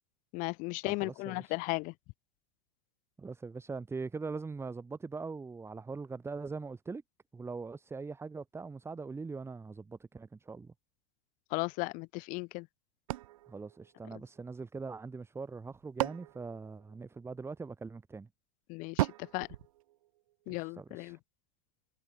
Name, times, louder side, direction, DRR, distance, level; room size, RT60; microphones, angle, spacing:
voice 1, 0.3-1.9 11.5-12.7 18.7-19.5 20.5-21.2, left 26 dB, 50° left, 0.7 m, -36 dB
voice 2, 0.8-1.5 3.2-7.0 7.3-10.7 13.5-18.3 20.5-21.2, right 4 dB, 15° right, 2.6 m, -42 dB
sound 1, 13.1-14.6 15.5-17.5 19.0-20.6, right 16 dB, 75° right, 0.6 m, -38 dB
hypercardioid pair, 105°, 18 cm